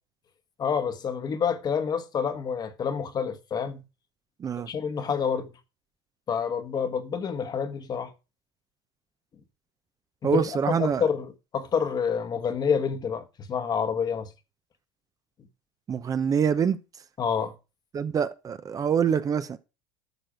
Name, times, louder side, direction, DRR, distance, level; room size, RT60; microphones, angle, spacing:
voice 1, 0.6-3.8 4.7-5.5 6.3-8.1 10.2-14.3 17.2-17.5, left 6 dB, 35° left, 1.4 m, -28 dB
voice 2, 10.2-11.0 15.9-16.8 17.9-19.6, right 7 dB, 30° right, 0.8 m, -25 dB
12.5 x 6.6 x 5.1 m
supercardioid pair, 100°, 12 cm